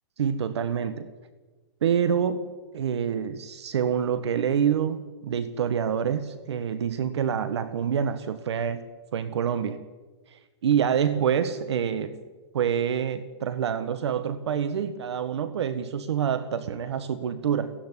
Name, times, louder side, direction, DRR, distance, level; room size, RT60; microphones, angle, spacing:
voice 1, 0.2-1.1 1.8-2.5 2.7-8.8 9.1-9.8 10.3-12.2 12.5-17.7, right 8 dB, 70° right, 12 dB, 1.4 m, -27 dB
16.5 x 16.0 x 9.8 m, 1.3 s
hypercardioid pair, 160°, 15 cm